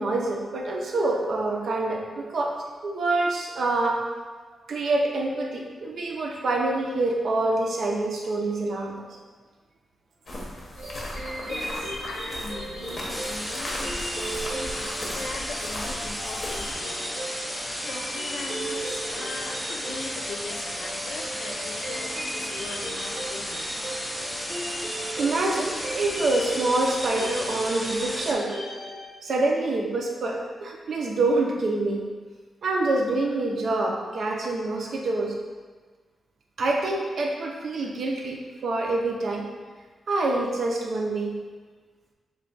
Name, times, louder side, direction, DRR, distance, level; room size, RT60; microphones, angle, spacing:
voice 1, 0.0-2.6 2.8-4.0 4.7-9.0 25.2-28.5 29.2-32.0 32.6-35.3 36.6-38.4 38.6-39.4 40.1-41.4, right 2 dB, 60° right, 0 dB, 0.5 m, -26 dB
sound 1, 10.3-16.7, left 1 dB, 40° left, 0.7 m, -37 dB
sound 2, 10.8-29.1, right 1 dB, 90° right, 1.0 m, -36 dB
voice 2, 11.4-17.3 17.9-23.6, left 3 dB, 85° left, 1 dB, 0.4 m, -40 dB
sound 3, 13.1-28.3, equal, 5° left, 0.4 m, -34 dB
3.3 x 2.2 x 3.8 m, 1.4 s
wide cardioid pair, 135°, 0 cm